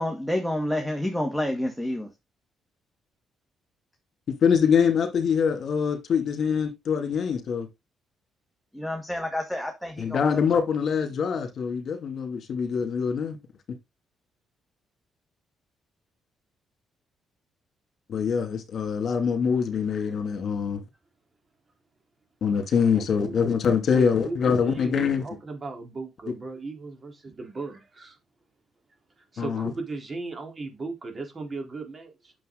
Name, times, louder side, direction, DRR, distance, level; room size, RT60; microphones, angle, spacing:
voice 1, 0.0-2.1 8.7-10.4, left 1 dB, ahead, 1.9 m, -29 dB
voice 2, 4.3-7.7 10.0-13.4 13.7-13.8 18.1-20.8 22.4-25.2 26.3-26.4 29.4-29.7, left 6 dB, 60° left, 2.6 m, -24 dB
voice 3, 22.9-23.5 23.9-28.2 29.2-32.3, right 3 dB, 35° right, 3.8 m, -36 dB
9.2 x 7.1 x 3.9 m
cardioid pair, 90°, 0 cm